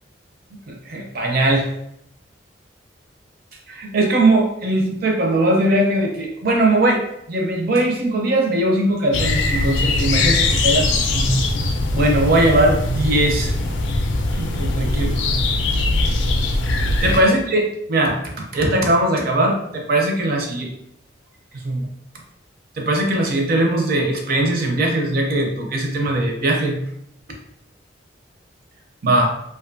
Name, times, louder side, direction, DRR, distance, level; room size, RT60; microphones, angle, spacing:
voice 1, 0.7-1.7 3.7-7.0 7.3-11.4 11.9-13.5 14.4-15.4 17.0-17.6 17.9-20.7 21.6-21.9 22.8-26.8 29.0-29.3, right 1 dB, 55° right, 1 dB, 0.5 m, -20 dB
sound 1, 9.1-17.2, left 2 dB, 75° left, 0.4 m, -21 dB
2.5 x 2.2 x 2.5 m, 0.75 s
head